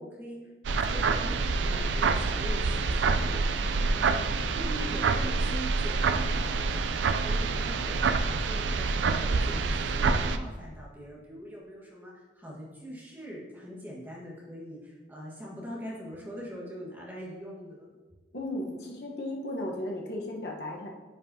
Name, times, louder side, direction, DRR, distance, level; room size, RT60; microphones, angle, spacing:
voice 1, 0.0-4.3 4.5-6.9 7.1-17.9, equal, 10° right, -6 dB, 1.5 m, -43 dB
sound 1, 0.6-10.4, right 4 dB, 75° right, 0.4 m, -27 dB
voice 2, 18.3-20.9, left 1 dB, 60° left, -1 dB, 1.1 m, -35 dB
9.8 x 5.3 x 2.8 m, 1.3 s
head